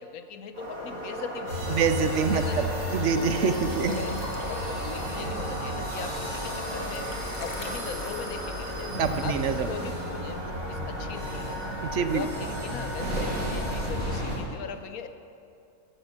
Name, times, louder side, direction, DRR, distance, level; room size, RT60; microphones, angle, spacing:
voice 1, 0.0-1.9 2.3-2.6 3.9-4.2 4.5-7.1 7.4-8.9 9.2-11.6 12.1-15.1, left 7 dB, 85° left, 9 dB, 1.3 m, -40 dB
sound 1, 0.5-13.9, equal, 30° right, 3.2 m, -36 dB
sound 2, 1.5-14.3, equal, 85° right, 4.9 m, -34 dB
voice 2, 1.7-3.9 9.0-9.7 11.9-12.2, right 6 dB, 60° right, 10 dB, 1.1 m, -26 dB
sound 3, 3.2-9.6 9.9-10.0 10.3-11.0 11.8-11.9, left 3 dB, 40° left, 1.6 m, -46 dB
15.0 x 11.0 x 6.1 m, 2.6 s
omnidirectional pair, 1.5 m